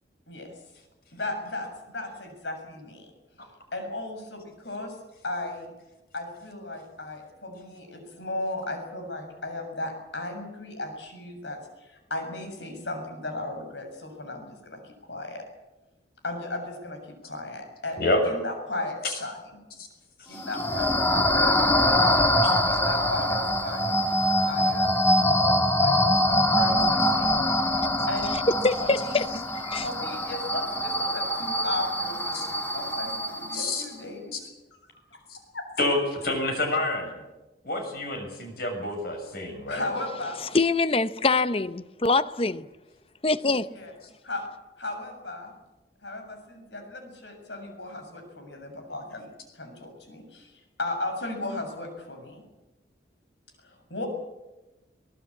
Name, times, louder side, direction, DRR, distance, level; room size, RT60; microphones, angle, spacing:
voice 1, 1.1-3.1 3.7-5.0 5.2-5.7 6.1-15.4 16.2-19.6 20.3-24.0 24.5-26.2 26.5-27.4 28.1-28.4 28.8-29.2 29.8-34.3 35.5-35.7 39.7-40.4 43.7-43.9 44.2-44.4 44.8-45.5 46.0-49.3 49.5-50.5 50.8-52.4 53.6-54.1, left 2 dB, 75° left, 7.0 m, -36 dB
sound 1, 20.3-33.8, left 1 dB, 10° left, 1.9 m, -24 dB
voice 2, 28.6-29.9 40.5-42.7 43.2-43.7, left 3 dB, 30° left, 0.7 m, -24 dB
voice 3, 33.5-33.8 34.3-34.4 35.8-37.1 37.6-39.9, left 2 dB, 55° left, 6.8 m, -28 dB
23.5 x 19.5 x 8.5 m
head